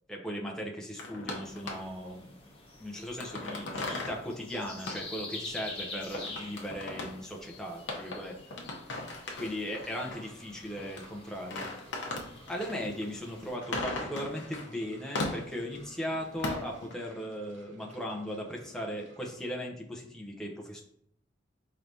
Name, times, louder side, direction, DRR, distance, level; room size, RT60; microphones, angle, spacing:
voice 1, 0.1-2.4 2.8-8.3 9.4-11.7 12.5-20.8, equal, 5° left, -1 dB, 0.6 m, -38 dB
sound 1, 1.0-2.1 2.7-4.2 4.5-4.6 4.9-5.0 5.8-5.9 6.1-7.2 7.9-10.3 10.8-11.1 11.4-14.7 15.0-15.8 16.1-16.9, left 2 dB, 65° left, 0.8 m, -38 dB
sound 2, 1.4-13.6, left 3 dB, 30° left, 1.0 m, -47 dB
sound 3, 9.9-19.6, right 1 dB, 70° right, 0.7 m, -57 dB
4.7 x 3.3 x 2.7 m, 0.71 s
head